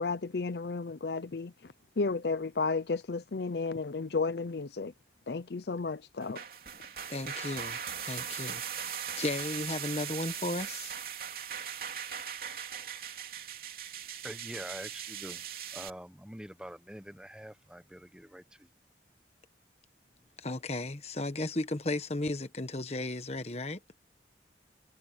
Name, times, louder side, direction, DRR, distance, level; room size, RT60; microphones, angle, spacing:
voice 1, 0.0-4.9 5.3-6.4, left 4 dB, 60° left, 0.6 m, -33 dB
sound 1, 6.2-15.9, right 8 dB, 50° right, 3.5 m, -39 dB
voice 2, 7.1-10.9 20.4-23.8, left 2 dB, 35° left, 1.2 m, -35 dB
voice 3, 14.2-15.4 15.7-18.7, equal, 5° right, 1.2 m, -45 dB
head